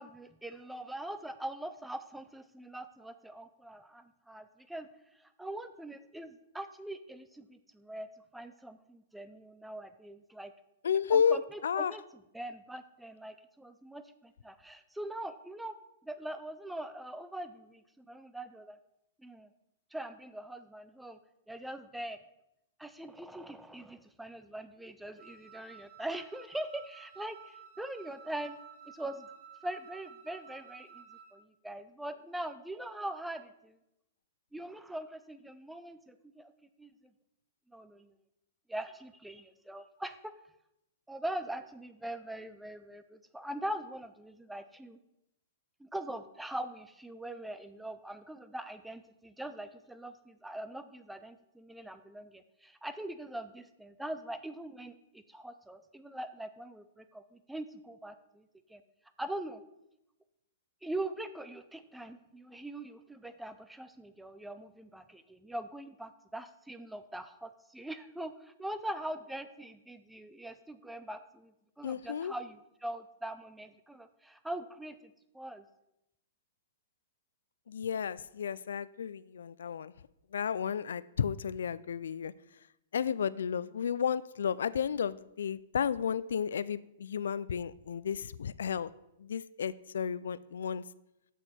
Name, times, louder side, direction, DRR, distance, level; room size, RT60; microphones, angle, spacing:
voice 1, 0.0-4.9 5.2-8.1 8.3-10.5 11.1-12.0 12.3-15.8 16.0-18.8 19.2-19.5 19.9-21.2 21.5-22.2 22.8-28.6 28.9-29.3 29.6-31.1 31.3-33.8 34.5-36.5 36.8-37.1 37.7-38.1 38.7-40.3 41.1-45.0 45.8-58.8 59.2-59.6 60.8-75.6, right 1 dB, 5° right, 11 dB, 0.4 m, -42 dB
voice 2, 10.8-11.9 71.8-72.3 77.7-79.9 80.3-82.3 82.9-88.9 89.2-90.8, left 7 dB, 85° left, 18 dB, 0.3 m, -32 dB
Wind instrument woodwind instrument, 25.2-31.4, right 7 dB, 50° right, 1.1 m, -53 dB
6.9 x 6.3 x 4.3 m, 0.84 s
hypercardioid pair, 150°, 0 cm